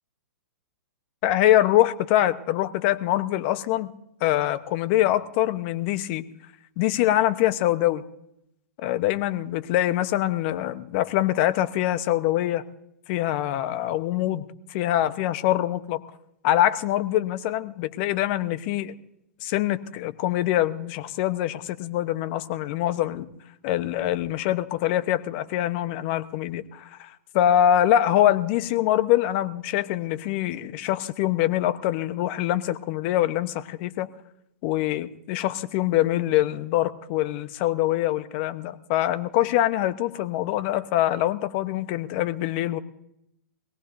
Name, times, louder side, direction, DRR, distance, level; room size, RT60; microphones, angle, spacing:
voice 1, 1.2-3.9 4.2-6.2 6.8-8.0 8.8-12.6 13.1-16.0 16.4-18.9 19.4-23.3 23.6-34.1 34.6-42.8, left 13 dB, 45° left, 14 dB, 1.1 m, -24 dB
22.5 x 18.0 x 2.7 m, 0.79 s
hypercardioid pair, 120°, 9 cm